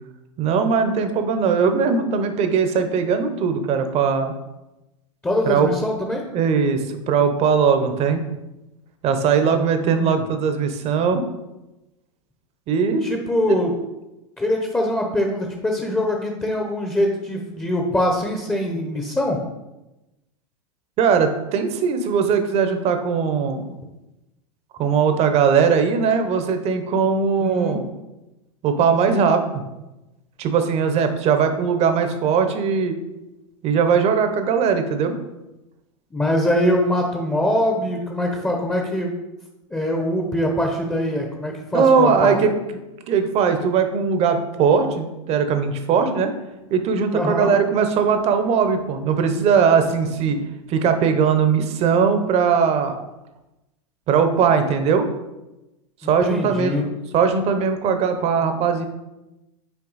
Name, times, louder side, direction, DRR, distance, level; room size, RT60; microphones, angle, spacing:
voice 1, 0.4-4.3 5.5-5.7 6.3-8.2 9.0-11.2 12.7-13.0 13.4-13.6 21.0-23.7 24.8-27.8 28.6-29.6 30.4-33.0 33.6-35.2 41.7-46.3 46.7-53.0 54.1-55.1 56.0-58.8, right 6 dB, 40° right, 8 dB, 0.8 m, -20 dB
voice 2, 5.2-6.2 9.5-10.2 13.0-13.7 14.4-19.4 27.4-27.8 36.1-39.1 39.7-42.4 47.1-47.5 56.0-56.8, left 1 dB, 10° left, 2 dB, 0.7 m, -23 dB
6.0 x 4.3 x 4.0 m, 0.99 s
hypercardioid pair, 105°, 17 cm